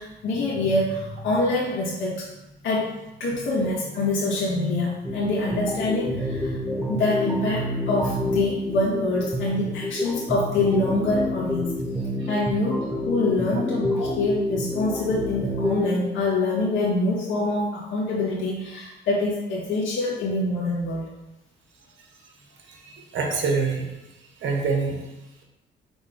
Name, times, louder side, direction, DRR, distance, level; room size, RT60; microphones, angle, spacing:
voice 1, 0.0-2.3 2.6-2.9 3.2-6.6 6.9-11.7 12.3-21.0, left 2 dB, 75° left, -6 dB, 1.8 m, -25 dB
sound 1, 5.0-16.1, left 1 dB, ahead, 1.0 m, -28 dB
voice 2, 22.7-23.9 24.4-25.0, right 4 dB, 70° right, 1 dB, 1.4 m, -25 dB
5.3 x 3.6 x 5.0 m, 0.97 s
cardioid pair, 90°, 20 cm